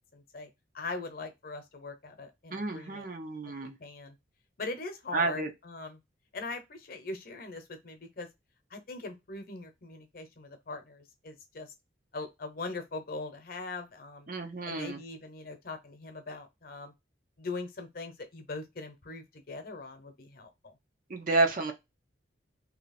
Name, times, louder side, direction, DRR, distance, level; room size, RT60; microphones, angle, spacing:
voice 1, 0.1-0.5 0.7-3.1 3.6-4.2 4.6-6.0 6.3-8.3 8.7-11.7 12.1-14.3 14.7-16.9 17.4-20.7, left 3 dB, 50° left, 0.9 m, -41 dB
voice 2, 2.5-3.7 5.1-5.5 14.3-15.0 21.1-21.7, right 3 dB, 45° right, 0.7 m, -30 dB
3.0 x 2.8 x 4.1 m
head